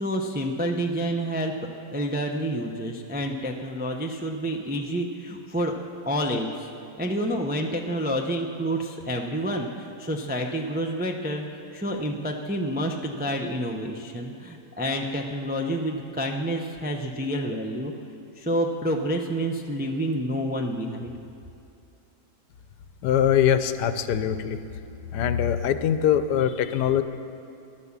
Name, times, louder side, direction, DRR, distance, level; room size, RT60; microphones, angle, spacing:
voice 1, 0.0-1.5 1.9-5.7 6.1-6.5 7.0-11.4 11.7-17.9 18.4-21.1, equal, 15° right, 2 dB, 0.3 m, -28 dB
voice 2, 23.0-24.6 25.1-27.0, left 9 dB, 80° left, 11 dB, 1.3 m, -22 dB
15.0 x 11.0 x 7.3 m, 2.6 s
omnidirectional pair, 1.8 m